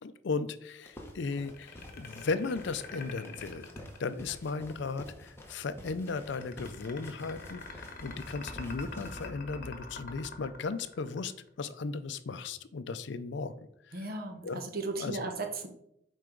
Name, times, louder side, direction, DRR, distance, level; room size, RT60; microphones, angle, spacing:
voice 1, 0.0-3.7 4.0-11.3 11.6-13.5 13.9-14.1 14.4-14.6 15.0-15.2, left 4 dB, 65° left, 13 dB, 0.5 m, -36 dB
sound 1, 0.8-9.3, left 1 dB, 15° left, 1.1 m, -49 dB
sound 2, 1.4-4.6 6.0-11.5, left 3 dB, 50° left, 1.2 m, -44 dB
voice 2, 13.9-15.7, right 3 dB, 55° right, 5 dB, 1.0 m, -36 dB
7.6 x 4.6 x 3.8 m, 0.75 s
head